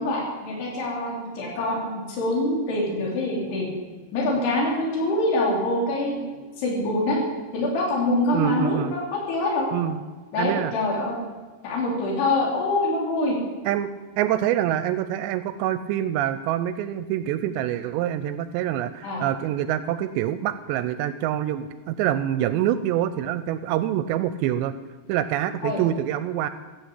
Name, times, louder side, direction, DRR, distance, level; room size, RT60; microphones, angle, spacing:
voice 1, 0.0-3.7 4.1-7.2 7.5-9.7 10.3-11.2 11.6-13.3 19.0-19.2 25.6-25.8, left 2 dB, 65° left, -2 dB, 5.2 m, -25 dB
voice 2, 8.3-8.9 9.7-10.0 10.4-10.7 13.7-13.9 14.2-24.7 25.1-26.5, right 11 dB, 85° right, 12 dB, 2.7 m, -25 dB
16.0 x 8.5 x 8.3 m, 1.3 s
omnidirectional pair, 5.2 m